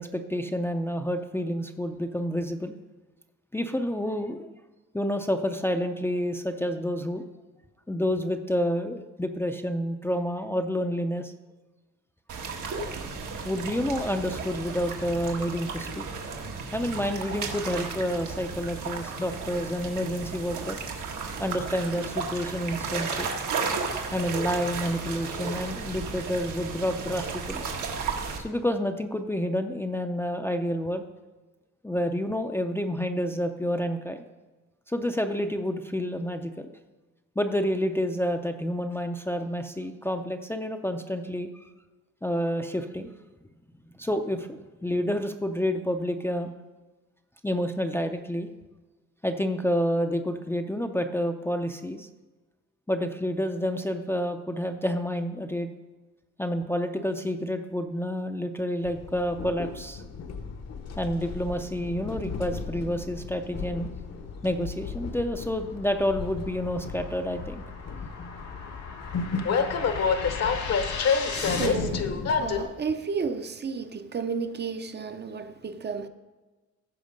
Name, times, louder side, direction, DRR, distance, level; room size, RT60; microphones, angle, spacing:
voice 1, 0.0-2.7 3.5-4.5 4.9-7.2 7.9-11.3 13.4-16.1 16.7-20.8 21.4-23.3 24.1-27.6 28.4-31.0 31.8-34.2 34.9-36.7 37.4-41.5 42.2-43.1 44.0-46.5 47.4-48.5 49.2-52.1 52.9-55.7 56.4-60.0 61.0-63.9 64.4-67.6, equal, 10° left, 0.5 m, -29 dB
sound 1, 12.3-28.4, right 4 dB, 85° right, 1.5 m, -34 dB
Train, 58.8-72.6, left 5 dB, 60° left, 1.0 m, -31 dB
sound 2, 64.8-71.7, left 5 dB, 80° left, 2.3 m, -39 dB
voice 2, 71.3-76.1, right 5 dB, 35° right, 0.6 m, -32 dB
15.0 x 6.0 x 5.2 m
wide cardioid pair, 150°, 29 cm